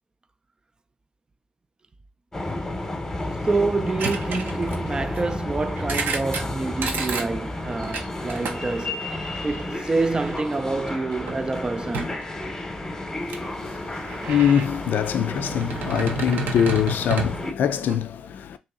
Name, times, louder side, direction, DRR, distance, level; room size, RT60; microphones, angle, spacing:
sound 1, 2.3-17.5, left 1 dB, 20° left, 0.9 m, -32 dB
voice 1, 3.4-9.1 9.4-12.2, right 3 dB, 25° right, 0.4 m, -27 dB
sound 2, 4.0-5.2 5.8-6.4 6.8-7.3 7.8-9.6 10.2-10.5 10.9-11.4 11.9-12.2 13.3-13.4 13.9-14.7 15.3-18.0, right 4 dB, 75° right, 0.7 m, -31 dB
voice 2, 13.2-18.6, left 9 dB, 70° left, 0.3 m, -24 dB
2.9 x 2.8 x 3.6 m
cardioid pair, 75°, 3 cm